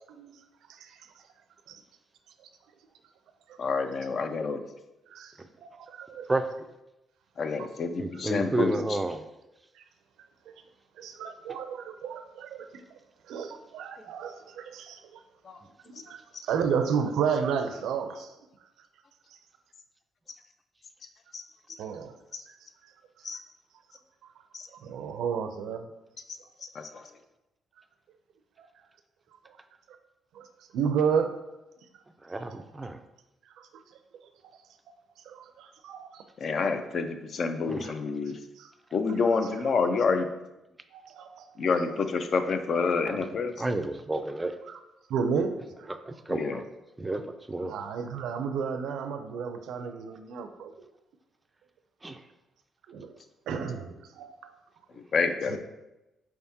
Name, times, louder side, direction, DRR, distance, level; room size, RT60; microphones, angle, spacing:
voice 1, 0.1-0.4 0.7-1.2 1.7-1.8 2.4-2.5 3.5-3.8 5.1-6.3 7.6-7.7 8.7-8.8 9.7-9.8 10.5-10.6 11.0-13.0 13.2-15.2 15.9-18.4 21.8-22.6 22.8-22.9 23.2-23.4 24.2-24.3 24.7-25.9 28.6-28.7 29.4-29.6 30.3-31.3 32.4-32.6 33.4-34.0 34.5-34.6 35.3-36.2 37.8-37.9 38.6-38.7 39.0-39.5 40.9-41.5 41.7-41.9 44.7-44.8 45.1-45.9 47.6-50.7 52.9-53.2 53.5-54.5 55.5-55.6, right 6 dB, 80° right, 7 dB, 0.4 m, -33 dB
voice 2, 3.6-4.6 7.4-8.8 15.5-15.6 16.3-16.4 21.3-21.4 22.3-22.4 23.2-23.4 24.5-24.7 26.7-27.0 36.4-38.4 38.9-40.3 41.6-43.5 46.3-46.6 55.0-55.6, left 4 dB, 55° left, 8 dB, 0.4 m, -28 dB
voice 3, 8.0-9.2 32.2-33.0 37.7-37.9 43.0-43.2 43.6-44.6 45.9-46.7 47.0-47.7 52.0-52.2, right 2 dB, 15° right, 8 dB, 0.3 m, -31 dB
4.7 x 3.5 x 2.7 m, 0.96 s
cardioid pair, 90°, 0 cm